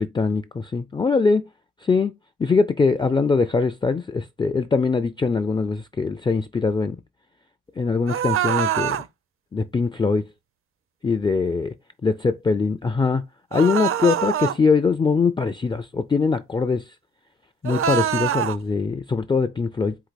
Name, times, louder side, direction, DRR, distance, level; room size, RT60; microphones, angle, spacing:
voice 1, 0.0-1.5 1.8-2.1 2.4-7.0 7.8-9.0 9.5-10.3 11.0-11.7 12.0-13.2 13.5-16.9 17.6-20.0, left 4 dB, 15° left, 0.4 m, -22 dB
sound 1, 8.1-9.1 13.5-14.6 17.6-18.6, right 9 dB, 45° right, 0.5 m, -24 dB
4.7 x 2.5 x 4.0 m
cardioid pair, 90°, 30 cm